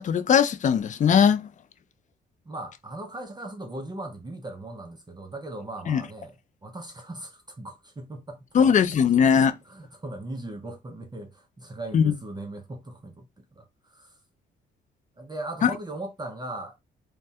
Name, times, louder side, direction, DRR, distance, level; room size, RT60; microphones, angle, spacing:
voice 1, 0.0-1.5 5.9-6.0 8.5-9.5 11.9-12.1 15.6-15.7, left 7 dB, 40° left, 0.4 m, -20 dB
voice 2, 2.5-9.0 9.4-14.1 15.2-16.8, right 2 dB, 20° right, 0.6 m, -39 dB
3.2 x 2.2 x 2.7 m
cardioid pair, 90°, 20 cm